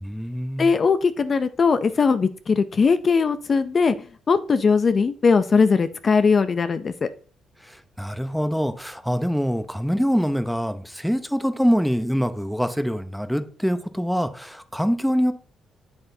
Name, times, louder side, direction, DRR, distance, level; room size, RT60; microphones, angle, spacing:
voice 1, 0.0-0.7 7.6-15.3, equal, ahead, 0.7 m, -24 dB
voice 2, 0.6-3.9 4.3-7.1, left 5 dB, 40° left, 0.5 m, -20 dB
7.9 x 7.8 x 2.7 m
cardioid pair, 90°, 0 cm